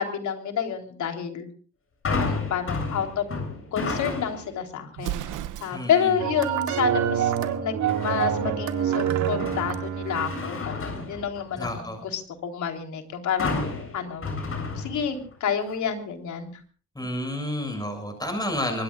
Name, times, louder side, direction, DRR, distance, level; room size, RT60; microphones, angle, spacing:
voice 1, 0.0-1.5 2.2-3.3 3.7-5.2 5.6-7.3 7.6-13.6 13.9-14.3 14.8-16.5 17.0-17.1, left 7 dB, 70° left, 4 dB, 3.8 m, -29 dB
sound 1, 2.0-4.6 5.0-5.4 7.9-8.6 9.0-11.9 13.4-15.3 15.7-15.8, left 3 dB, 45° left, 7.9 m, -32 dB
Explosion, 4.9-6.1, right 12 dB, 90° right, 0.9 m, -34 dB
voice 2, 5.7-6.1 11.6-12.0 17.0-18.8, left 1 dB, 15° left, 4 dB, 7.1 m, -30 dB
sound 2, 6.2-10.6, right 9 dB, 70° right, 2.1 m, -26 dB
24.5 x 21.5 x 2.5 m, 0.41 s
cardioid pair, 90°, 30 cm